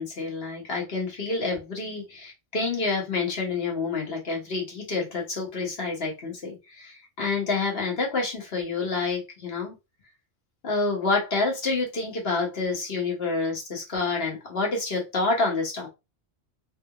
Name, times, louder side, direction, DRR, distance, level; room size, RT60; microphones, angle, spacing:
voice 1, 0.0-9.7 10.6-15.9, left 3 dB, 60° left, 0 dB, 1.4 m, -28 dB
3.4 x 2.5 x 2.9 m, 0.25 s
omnidirectional pair, 1.1 m